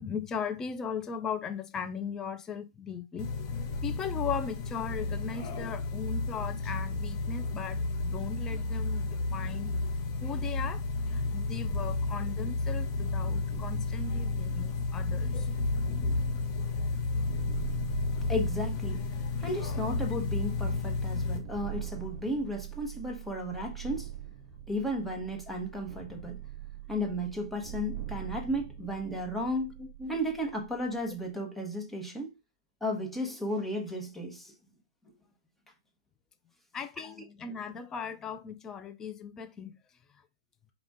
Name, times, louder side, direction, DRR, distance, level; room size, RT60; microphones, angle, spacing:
voice 1, 0.0-3.3 3.8-9.8 10.2-15.5 16.1-16.2 29.8-29.9 36.7-39.7, left 6 dB, 20° left, 0.6 m, -38 dB
sound 1, 3.2-21.4, left 3 dB, 40° left, 0.9 m, -32 dB
sound 2, 13.5-31.2, right 12 dB, 40° right, 0.8 m, -43 dB
voice 2, 18.3-19.0 19.4-24.1 24.7-26.4 26.9-29.7 30.0-32.3 32.8-34.5, equal, 5° left, 1.2 m, -34 dB
5.1 x 2.5 x 3.6 m
hypercardioid pair, 125°, 2 cm